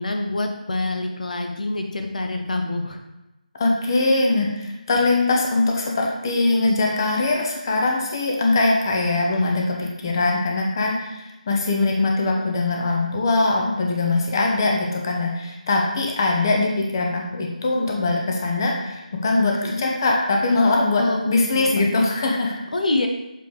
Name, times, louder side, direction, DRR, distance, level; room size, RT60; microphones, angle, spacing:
voice 1, 0.0-3.0 10.2-10.4 19.6-19.9 21.0-21.2 21.5-21.9 22.7-23.1, left 2 dB, 65° left, 4 dB, 0.9 m, -26 dB
voice 2, 3.6-22.5, left 2 dB, 30° left, 0 dB, 0.9 m, -22 dB
7.8 x 3.3 x 4.7 m, 0.97 s
figure-of-eight pair, 165°, 4 cm